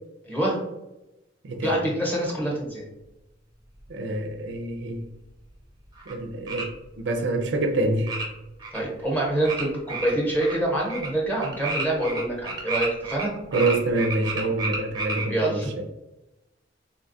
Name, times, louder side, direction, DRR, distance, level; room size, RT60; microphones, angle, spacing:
voice 1, 0.2-0.6 1.6-2.8 8.7-13.3 15.3-15.7, right 1 dB, 10° left, 0.9 m, -26 dB
voice 2, 1.4-1.8 3.9-5.1 6.1-8.2 13.5-15.9, right 2 dB, 75° right, 0.4 m, -26 dB
sound 1, 6.0-6.1 6.5-6.6 8.1-8.2 8.6-8.8 9.4-9.6 9.9-10.5 10.9-11.1 11.4-13.3 13.5-15.3, right 3 dB, 20° right, 0.5 m, -31 dB
3.7 x 2.3 x 2.5 m
head